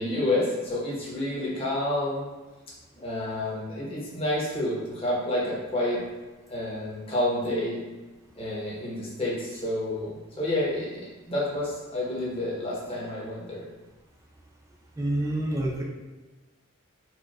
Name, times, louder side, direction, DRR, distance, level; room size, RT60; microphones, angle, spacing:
voice 1, 0.0-2.3 3.0-6.0 6.5-7.8 8.4-13.6, left 1 dB, 25° left, -6 dB, 0.9 m, -29 dB
voice 2, 15.0-15.8, right 1 dB, 15° right, -2 dB, 0.4 m, -27 dB
4.4 x 2.2 x 2.3 m, 1.2 s
head